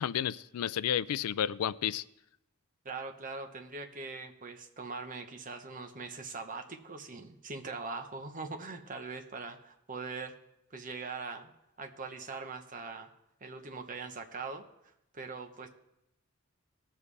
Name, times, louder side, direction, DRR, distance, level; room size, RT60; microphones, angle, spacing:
voice 1, 0.0-2.0, left 9 dB, 90° left, 19 dB, 0.4 m, -31 dB
voice 2, 2.8-10.3 10.7-11.5 11.8-13.1 13.4-14.6 15.1-15.7, right 4 dB, 40° right, 5 dB, 1.0 m, -41 dB
19.5 x 7.3 x 3.3 m, 0.83 s
head